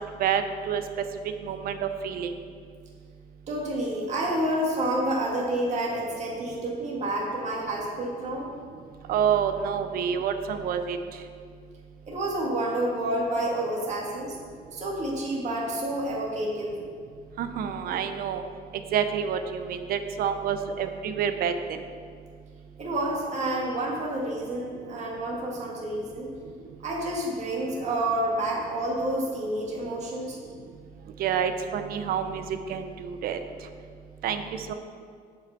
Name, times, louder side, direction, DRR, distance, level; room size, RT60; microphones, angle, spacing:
voice 1, 0.2-0.8 1.4-2.3 9.1-11.0 17.4-18.4 18.9-21.5 31.2-32.4 32.7-33.4 34.2-34.7, right 8 dB, 60° right, 8 dB, 0.6 m, -28 dB
voice 2, 3.5-8.5 12.1-14.4 14.7-16.8 22.8-26.3 26.8-30.4, right 1 dB, 45° right, -3 dB, 1.9 m, -29 dB
7.8 x 5.0 x 6.8 m, 2.1 s
cardioid pair, 110°, 17 cm